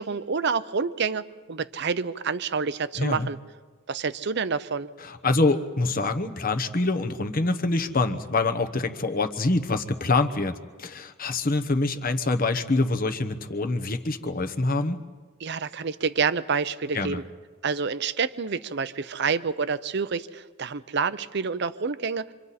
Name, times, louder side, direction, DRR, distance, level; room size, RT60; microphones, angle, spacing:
voice 1, 0.0-3.4 3.9-4.9 15.4-17.2 17.6-22.3, right 5 dB, 55° right, 14 dB, 0.6 m, -28 dB
voice 2, 3.0-3.3 5.1-10.5 10.8-15.0 16.9-17.2, left 2 dB, 40° left, 6 dB, 1.1 m, -25 dB
27.5 x 25.5 x 4.2 m, 1.4 s
head